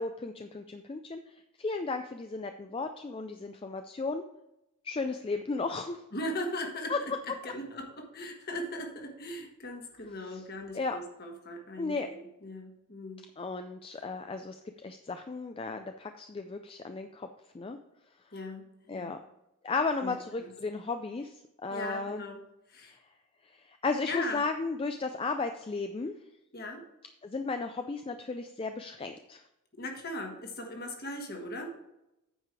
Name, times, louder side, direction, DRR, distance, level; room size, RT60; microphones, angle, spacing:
voice 1, 0.0-1.3 1.6-4.2 4.8-6.0 6.9-7.0 10.3-10.4 10.7-11.0 11.8-12.1 13.4-14.6 14.8-17.3 17.5-17.8 18.9-19.2 19.6-21.3 21.6-22.2 23.4-26.1 27.2-29.4, left 3 dB, 25° left, 7 dB, 0.3 m, -34 dB
voice 2, 6.1-13.3 18.3-19.2 20.0-20.5 21.7-22.4 22.7-23.0 24.0-24.5 26.5-26.8 29.8-31.8, left 1 dB, 45° left, 3 dB, 1.4 m, -39 dB
8.9 x 5.0 x 4.7 m, 0.88 s
head